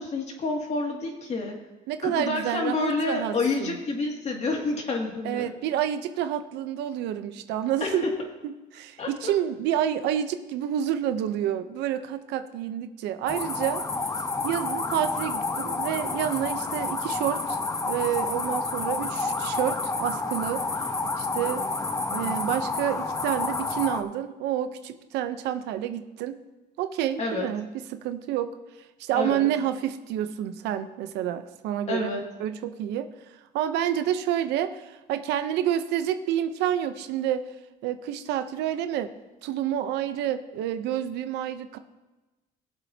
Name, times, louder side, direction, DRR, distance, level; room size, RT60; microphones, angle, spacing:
voice 1, 0.0-1.6 2.0-5.5 7.8-8.2 9.0-9.3 27.2-27.5 29.1-29.5 31.9-32.3, left 3 dB, 40° left, 1 dB, 2.4 m, -29 dB
voice 2, 1.9-3.8 5.2-8.0 8.4-13.8 14.4-20.6 21.2-21.6 22.1-26.4 26.8-28.5 29.0-32.1 32.4-37.4 37.8-39.1 39.4-41.8, right 11 dB, 90° right, 10 dB, 0.8 m, -29 dB
sound 1, 13.3-24.0, left 3 dB, 20° left, 1.0 m, -29 dB
21.0 x 7.6 x 2.8 m, 1.1 s
cardioid pair, 110°, 17 cm